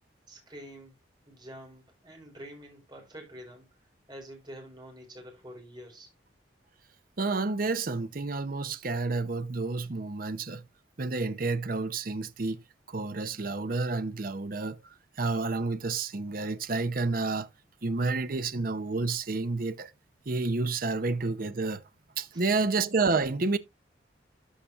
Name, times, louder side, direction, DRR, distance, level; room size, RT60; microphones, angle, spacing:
voice 1, 0.3-1.0 1.3-3.7 4.1-6.1 22.3-22.5, equal, 25° right, 4.4 m, -47 dB
voice 2, 7.2-10.6 11.0-12.6 12.9-14.8 15.2-17.5 17.8-19.9 20.3-21.8 22.2-23.6, right 3 dB, 50° right, 0.7 m, -30 dB
13.0 x 5.9 x 2.4 m
head